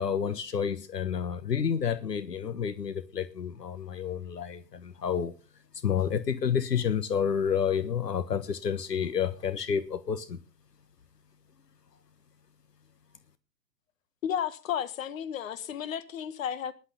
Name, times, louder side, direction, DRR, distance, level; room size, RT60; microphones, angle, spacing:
voice 1, 0.0-5.3 5.8-10.4, left 7 dB, 70° left, 1.5 m, -29 dB
voice 2, 14.2-16.7, left 9 dB, 50° left, 1.7 m, -33 dB
18.5 x 11.5 x 3.8 m
figure-of-eight pair, 120°, 49 cm